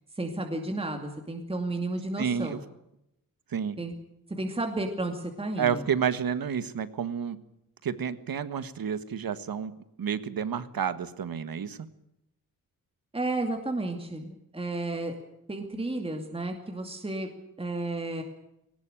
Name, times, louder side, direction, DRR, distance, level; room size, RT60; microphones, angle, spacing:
voice 1, 0.1-2.6 3.8-3.9 4.3-5.9 13.1-15.2 15.5-17.3 17.6-18.2, right 2 dB, 15° right, 3 dB, 2.5 m, -32 dB
voice 2, 2.2-2.6 3.5-3.8 5.6-7.4 7.8-9.7 10.0-11.8, right 7 dB, 75° right, 13 dB, 1.6 m, -30 dB
20.0 x 18.5 x 9.1 m, 0.84 s
wide cardioid pair, 155°, 35 cm